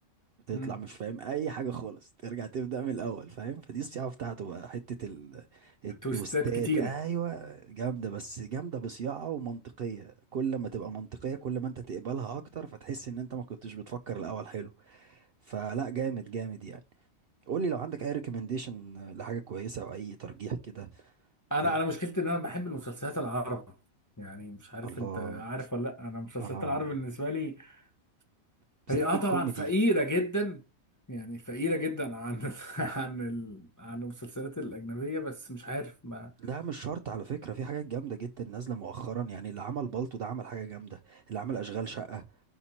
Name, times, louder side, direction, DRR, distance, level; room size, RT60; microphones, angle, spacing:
voice 1, 0.5-16.8 17.5-21.2 21.6-21.8 24.8-25.4 26.4-26.9 28.9-29.7 36.4-42.3, right 7 dB, 65° right, 0.6 m, -36 dB
voice 2, 6.0-6.9 21.5-23.6 24.2-27.8 28.9-30.6 31.1-36.3, equal, 20° left, 0.5 m, -32 dB
5.7 x 4.3 x 4.0 m
omnidirectional pair, 1.4 m